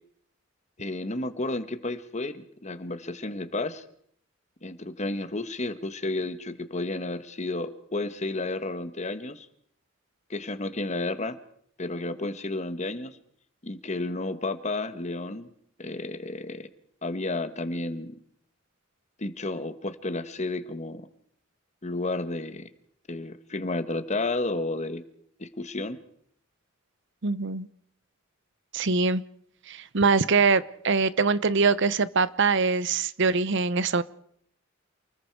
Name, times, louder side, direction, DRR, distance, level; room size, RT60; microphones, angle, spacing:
voice 1, 0.8-3.8 4.6-9.5 10.3-11.4 11.8-13.2 13.6-15.5 15.8-16.7 17.0-18.1 19.2-21.1 21.8-22.7 23.1-25.0 25.4-26.0, left 2 dB, 35° left, 11 dB, 1.4 m, -32 dB
voice 2, 27.2-27.7 28.7-29.2 29.7-34.0, right 4 dB, 60° right, 17 dB, 0.8 m, -23 dB
29.0 x 20.5 x 4.7 m, 0.65 s
head